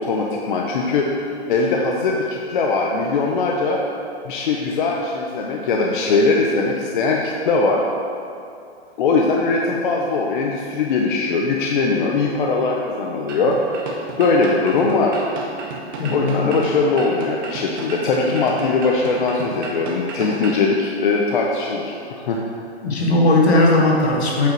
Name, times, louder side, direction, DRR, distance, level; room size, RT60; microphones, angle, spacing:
voice 1, 0.0-3.8 4.3-7.8 9.0-13.8 14.2-15.2 16.1-22.4, left 3 dB, 50° left, -1 dB, 0.7 m, -20 dB
sound 1, 13.3-20.7, right 3 dB, 20° right, 0.5 m, -33 dB
voice 2, 16.0-16.6 22.8-24.5, left 2 dB, 75° left, -3 dB, 1.9 m, -17 dB
8.2 x 4.8 x 4.6 m, 2.5 s
hypercardioid pair, 160°, 33 cm